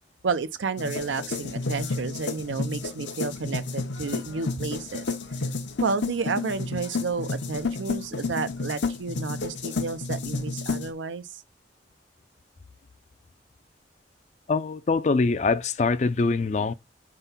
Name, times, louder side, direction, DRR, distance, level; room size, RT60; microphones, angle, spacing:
voice 1, 0.2-5.2 5.8-11.4, right 4 dB, 90° right, 0.6 m, -31 dB
sound 1, 0.8-10.9, left 3 dB, 80° left, 0.8 m, -31 dB
voice 2, 14.5-16.7, left 4 dB, 40° left, 0.4 m, -23 dB
4.5 x 3.8 x 5.6 m
head